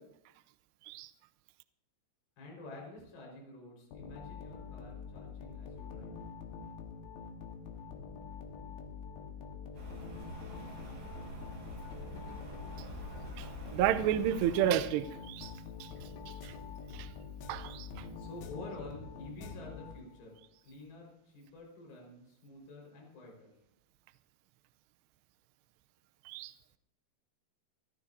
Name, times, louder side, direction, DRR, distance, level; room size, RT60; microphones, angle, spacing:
voice 1, 2.4-6.2 18.2-23.5, left 2 dB, 50° left, -1 dB, 6.6 m, -49 dB
sound 1, 3.9-20.3, left 5 dB, 75° left, 3.6 m, -46 dB
Rain, 9.7-14.7, right 1 dB, 50° right, 4.8 m, -46 dB
voice 2, 13.7-15.5 15.8-15.9 16.3-16.5 16.9-17.1 17.5-18.1 26.3-26.5, right 10 dB, 85° right, 11 dB, 2.4 m, -31 dB
28.5 x 13.0 x 2.8 m, 0.80 s
omnidirectional pair, 5.7 m